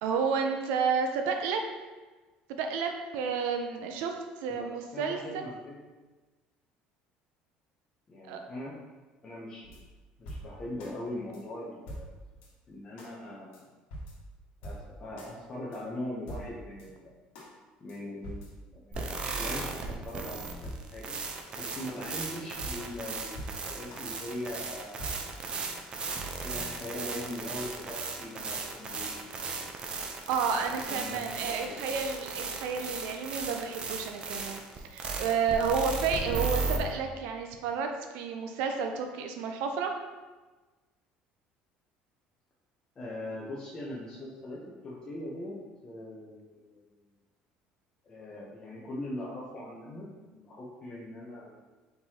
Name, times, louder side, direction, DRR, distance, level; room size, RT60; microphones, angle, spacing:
voice 1, 0.0-1.6 2.5-4.1 4.4-5.4 8.3-8.4 30.3-34.6 34.9-39.9, right 5 dB, 85° right, 4 dB, 0.5 m, -31 dB
voice 2, 4.5-5.8 8.1-8.8 9.2-9.8 10.2-12.1 12.7-13.7 14.6-17.1 17.8-21.1 21.6-25.2 26.4-29.6 30.5-32.0 43.0-45.6 45.8-46.8 48.0-51.6, left 1 dB, 30° left, -6 dB, 0.7 m, -41 dB
sound 1, 9.6-10.9 11.3-11.4 11.9-12.5 13.0-13.1 13.5-13.6 13.9-15.3 15.7-15.8 16.3-16.9 17.3-17.5 17.9-18.0 18.2-19.7 20.1-20.2 20.6-21.2 21.7-21.8 22.2-22.3 22.6-24.0 24.4-24.5 25.0-25.6 26.1-26.2, right 1 dB, 85° left, 1.3 m, -44 dB
sound 2, 18.9-36.8, right 4 dB, 35° right, 0.5 m, -36 dB
4.6 x 3.7 x 2.8 m, 1.3 s
cardioid pair, 135°, 3 cm